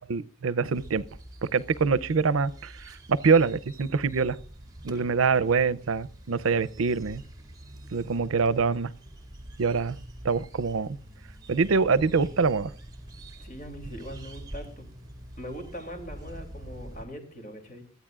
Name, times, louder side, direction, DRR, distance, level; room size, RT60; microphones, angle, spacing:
voice 1, 0.1-1.0 1.4-4.4 4.8-7.2 7.9-8.9 9.6-10.0 10.2-11.0 11.5-12.7, right 5 dB, 85° right, 0.6 m, -25 dB
sound 1, 0.7-17.0, right 1 dB, 20° right, 2.2 m, -45 dB
voice 2, 13.4-14.9 15.4-17.8, equal, 40° left, 2.9 m, -41 dB
22.5 x 14.0 x 2.4 m
head